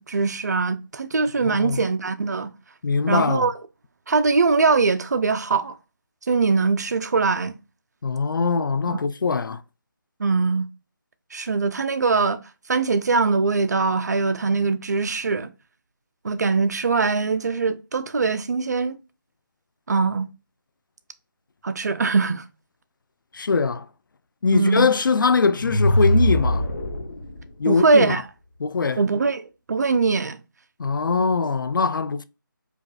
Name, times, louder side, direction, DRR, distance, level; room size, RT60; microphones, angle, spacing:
voice 1, 0.0-2.5 3.1-3.5 4.1-5.8 6.3-7.6 8.9-9.0 10.2-10.7 11.3-12.4 12.7-15.5 16.2-19.0 19.9-20.3 21.6-22.4 24.5-24.9 27.7-28.2 29.0-30.4, right 4 dB, 50° right, 0.5 m, -22 dB
voice 2, 1.4-1.8 2.8-3.5 8.0-9.6 23.3-23.9 24.4-26.6 27.6-28.2 28.6-29.0 30.8-32.2, left 5 dB, 70° left, 0.4 m, -22 dB
sound 1, 25.4-27.4, equal, 50° left, 0.9 m, -22 dB
5.1 x 2.4 x 2.3 m
figure-of-eight pair, 165°, 11 cm